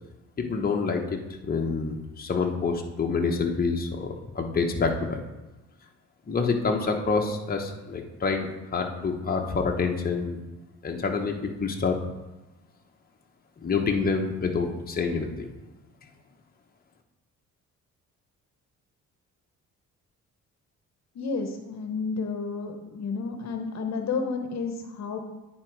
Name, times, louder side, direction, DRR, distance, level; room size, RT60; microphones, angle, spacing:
voice 1, 0.4-5.2 6.3-10.4 10.8-12.0 13.6-15.5, left 4 dB, 30° left, 2 dB, 1.0 m, -27 dB
voice 2, 21.1-25.2, left 4 dB, 60° left, 5 dB, 0.9 m, -31 dB
9.8 x 3.9 x 4.7 m, 1.1 s
cardioid pair, 90°, 30 cm